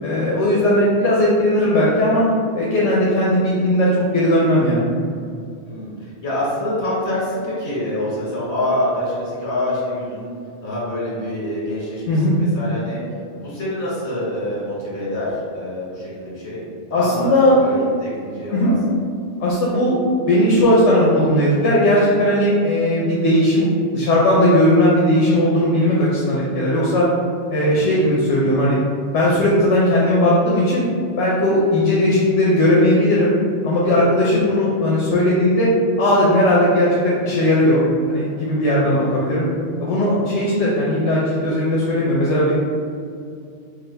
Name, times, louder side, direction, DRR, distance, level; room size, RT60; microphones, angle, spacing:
voice 1, 0.0-2.3 2.5-4.9 12.1-12.4 16.9-17.6 18.5-18.7 19.4-27.1 27.5-28.8 29.1-30.8 31.2-33.4 33.6-35.7 36.0-39.5 39.8-42.5, left 1 dB, 80° left, -5 dB, 1.0 m, -17 dB
voice 2, 5.6-10.3 10.6-13.0 13.3-16.6 16.9-18.7 27.7-28.0 33.8-34.5 38.8-39.1, left 1 dB, 65° left, -8 dB, 1.9 m, -26 dB
4.8 x 2.2 x 3.3 m, 2.4 s
omnidirectional pair, 1.2 m